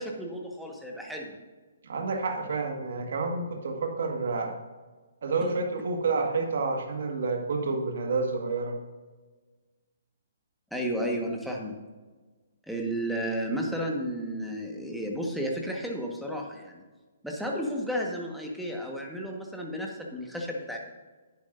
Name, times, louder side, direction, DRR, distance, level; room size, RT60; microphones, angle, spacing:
voice 1, 0.0-1.4 10.7-11.8 12.7-16.8 17.2-20.8, equal, ahead, -1 dB, 1.4 m, -32 dB
voice 2, 1.8-4.6 5.2-8.8, right 3 dB, 65° right, 4 dB, 1.7 m, -29 dB
11.0 x 9.5 x 2.6 m, 1.3 s
figure-of-eight pair, 135°, 0 cm